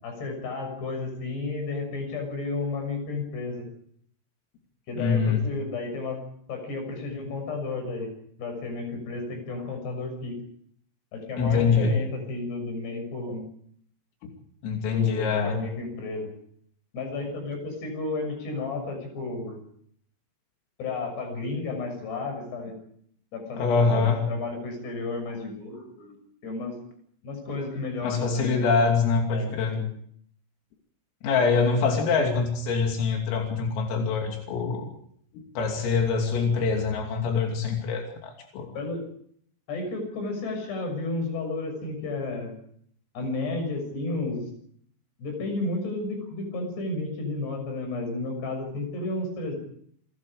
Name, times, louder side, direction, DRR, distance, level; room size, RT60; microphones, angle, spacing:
voice 1, 0.0-3.6 4.9-6.2 6.5-8.1 8.4-10.4 11.1-13.4 14.9-16.3 16.9-19.6 20.8-22.8 23.3-26.1 26.4-26.7 27.2-28.6 29.3-29.8 38.7-39.0 39.7-42.5 43.1-44.4 45.2-49.6, left 3 dB, 55° left, 5 dB, 8.4 m, -32 dB
voice 2, 5.0-5.4 11.4-12.0 14.6-15.6 23.6-24.3 28.0-29.8 31.2-34.9 35.3-38.7, left 5 dB, 90° left, 2 dB, 5.5 m, -24 dB
28.5 x 21.5 x 5.0 m, 0.65 s
omnidirectional pair, 5.8 m